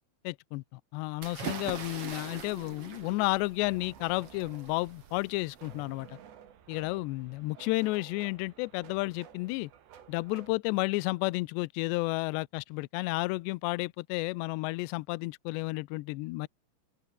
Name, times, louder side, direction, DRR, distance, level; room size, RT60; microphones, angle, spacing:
voice 1, 0.2-6.2 6.7-9.7 10.1-16.5, left 22 dB, 80° left, 2.6 m, -32 dB
sound 1, 1.2-6.0, right 5 dB, 35° right, 3.4 m, -43 dB
sound 2, 1.7-10.6, right 9 dB, 65° right, 4.8 m, -53 dB
open air
omnidirectional pair, 5.5 m